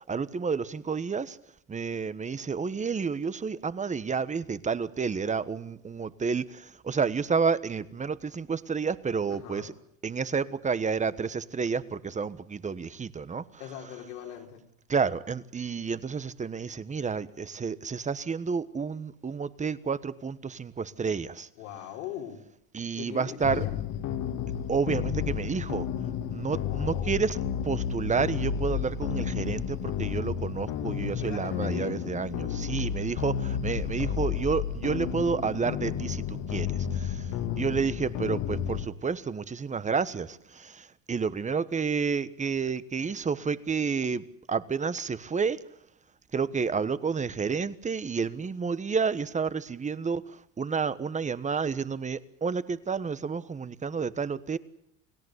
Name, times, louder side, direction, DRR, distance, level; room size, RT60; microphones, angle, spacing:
voice 1, 0.1-1.4 1.7-6.4 6.8-9.7 10.0-13.4 14.9-21.5 22.7-23.6 24.7-25.8 26.3-27.4 27.6-36.7 37.6-40.3 41.1-44.2 44.5-45.6 46.3-50.2 50.6-54.6, right 5 dB, 20° right, 15 dB, 1.3 m, -30 dB
voice 2, 9.3-9.7 13.6-14.6 21.6-22.4 23.0-23.8 26.6-27.2 31.2-32.0, left 10 dB, 80° left, 2 dB, 5.0 m, -40 dB
sound 1, 23.4-38.9, left 8 dB, 55° left, 2.4 m, -32 dB
29.0 x 18.0 x 8.2 m, 0.75 s
supercardioid pair, 100°, 38 cm